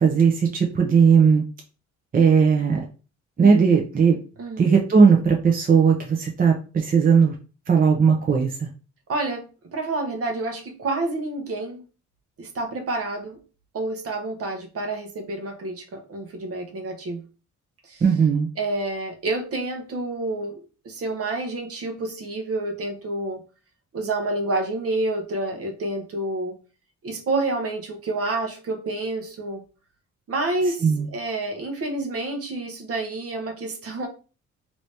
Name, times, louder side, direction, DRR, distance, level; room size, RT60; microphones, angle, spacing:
voice 1, 0.0-1.4 2.1-2.9 3.4-4.2 4.6-7.3 7.7-8.7 18.0-18.5 30.8-31.1, right 6 dB, 30° right, 1 dB, 0.6 m, -18 dB
voice 2, 4.4-4.8 9.1-11.8 12.4-13.4 13.7-17.2 17.8-18.0 18.6-20.6 20.8-23.4 23.9-26.5 27.0-29.6 30.3-34.1, right 2 dB, 50° right, 5 dB, 0.9 m, -28 dB
3.0 x 2.7 x 3.3 m, 0.35 s
cardioid pair, 90°, 30 cm